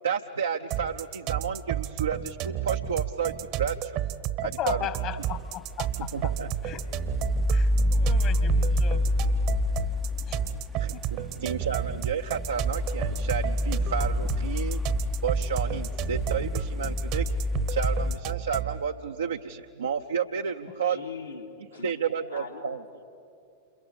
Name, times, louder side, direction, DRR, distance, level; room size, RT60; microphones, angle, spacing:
voice 1, 0.0-4.0 4.4-4.9 5.2-5.3 6.0-6.5 10.1-14.8 15.2-17.3 17.7-21.0 21.8-22.8, right 7 dB, 70° right, 5 dB, 0.6 m, -31 dB
sound 1, 0.7-18.8, right 12 dB, 40° right, 0.9 m, -32 dB
voice 2, 4.6-6.1 6.6-6.8 7.5-9.0 10.3-10.4 11.1-11.2, left 10 dB, 40° left, 12 dB, 1.4 m, -36 dB
sound 2, 5.2-18.2, left 2 dB, ahead, 0.5 m, -28 dB
voice 3, 20.6-21.9 22.3-23.0, left 5 dB, 90° left, -1 dB, 2.6 m, -42 dB
29.5 x 28.0 x 5.3 m, 2.7 s
figure-of-eight pair, 90°, 0 cm